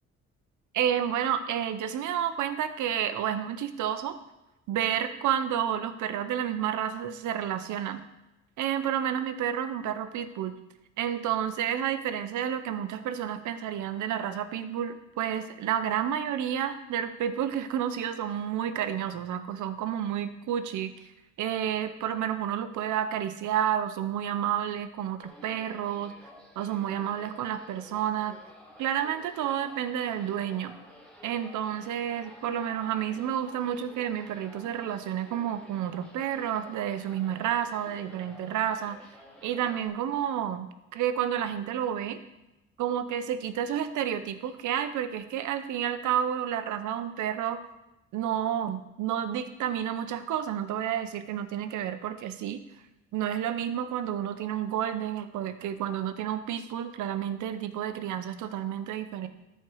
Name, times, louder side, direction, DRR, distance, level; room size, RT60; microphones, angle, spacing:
voice 1, 0.7-4.2 4.7-8.0 8.6-10.5 11.0-21.1 21.4-26.1 26.6-28.4 28.8-30.7 31.2-39.0 39.4-42.2 42.8-47.6 48.1-52.6 53.1-59.3, right 9 dB, 80° right, 10 dB, 0.8 m, -30 dB
sound 1, 25.2-39.9, equal, 5° left, 2.4 m, -52 dB
13.5 x 4.5 x 4.7 m, 0.97 s
cardioid pair, 90°, 30 cm